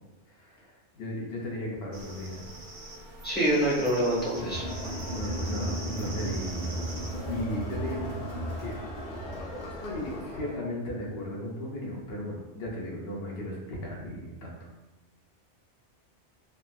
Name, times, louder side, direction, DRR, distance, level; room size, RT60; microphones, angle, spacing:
voice 1, 0.3-2.4 5.1-6.9 7.3-8.1 8.6-8.7 9.8-14.7, left 1 dB, 65° left, -2 dB, 0.8 m, -36 dB
sound 1, 1.9-7.4, right 2 dB, 55° right, 0.8 m, -43 dB
voice 2, 3.2-4.6, right 1 dB, 10° left, -7 dB, 0.6 m, -26 dB
Crowd, 4.3-10.6, right 1 dB, 85° left, 1.1 m, -35 dB
3.4 x 2.1 x 2.2 m, 1.0 s
omnidirectional pair, 1.2 m